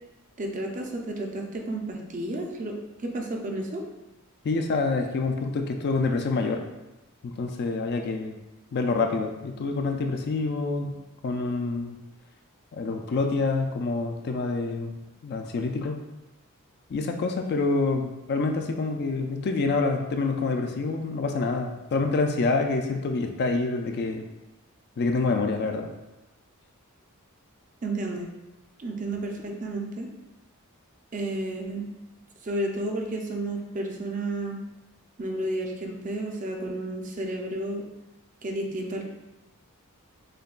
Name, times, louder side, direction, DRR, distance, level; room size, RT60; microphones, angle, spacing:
voice 1, 0.4-3.8 27.8-28.3 28.8-30.1 31.1-31.9 32.4-34.6 35.2-37.8 38.4-39.1, right 1 dB, 35° right, 1 dB, 0.5 m, -31 dB
voice 2, 4.4-6.6 7.2-8.4 8.7-11.0 11.2-12.0 12.7-16.0 16.9-24.3 25.0-25.9, left 3 dB, 50° left, 5 dB, 0.3 m, -27 dB
6.5 x 2.2 x 2.4 m, 0.97 s
head